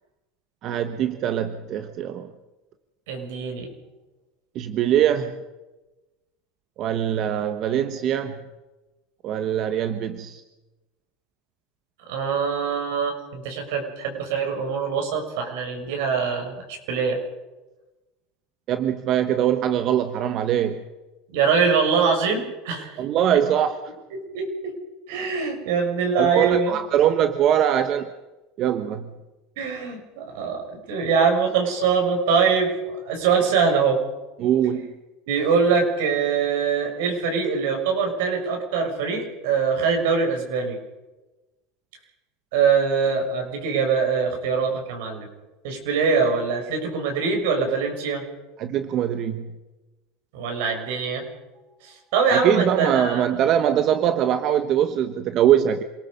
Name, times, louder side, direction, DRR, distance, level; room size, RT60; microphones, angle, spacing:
voice 1, 0.6-2.3 4.5-5.4 6.8-8.4 9.2-10.4 18.7-20.8 23.0-23.8 26.2-28.1 28.6-29.1 34.4-34.9 48.6-49.5 52.3-55.8, right 10 dB, 45° right, 9 dB, 1.2 m, -22 dB
voice 2, 3.1-3.7 12.1-17.2 21.3-23.0 24.3-24.7 25.1-26.7 29.6-34.0 35.3-40.8 42.5-45.3 45.6-48.2 50.3-51.2 51.8-53.2, right 5 dB, 75° right, 3 dB, 6.6 m, -23 dB
27.5 x 19.5 x 5.4 m, 1.1 s
supercardioid pair, 130°, 0 cm